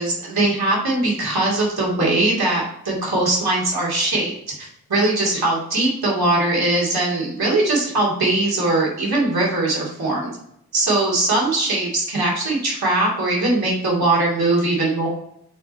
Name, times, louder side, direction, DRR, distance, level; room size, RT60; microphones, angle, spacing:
voice 1, 0.0-10.3 10.7-15.1, right 2 dB, 70° right, -3 dB, 2.4 m, -21 dB
6.2 x 4.5 x 4.2 m, 0.74 s
wide cardioid pair, 80°, 39 cm